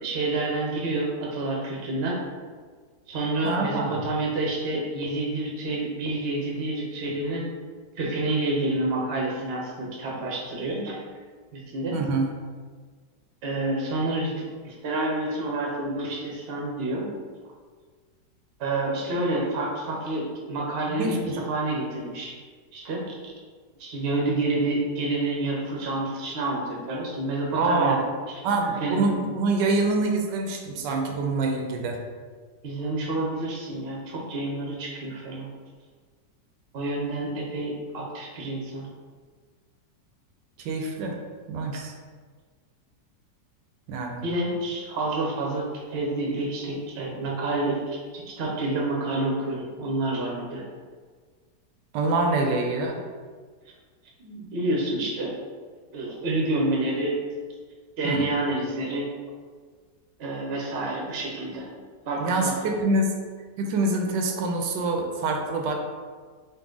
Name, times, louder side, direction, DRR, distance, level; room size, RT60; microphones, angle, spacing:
voice 1, 0.0-2.2 3.1-7.4 8.0-11.0 11.5-12.0 13.4-17.1 18.6-21.2 21.5-22.3 22.7-23.3 23.8-28.0 28.8-29.0 32.6-35.5 36.7-38.9 44.2-50.6 54.2-55.3 55.9-57.2 58.0-59.1 60.2-61.7 62.1-62.7, right 2 dB, 50° right, -2 dB, 0.8 m, -28 dB
voice 2, 3.4-4.0 11.9-12.3 20.9-21.4 27.6-28.0 28.4-32.0 40.6-41.2 41.5-41.9 43.9-44.3 51.9-53.0 58.0-58.3 62.2-63.1 63.6-65.7, right 3 dB, 85° right, 2 dB, 1.2 m, -25 dB
4.0 x 2.5 x 3.7 m, 1.5 s
omnidirectional pair, 1.9 m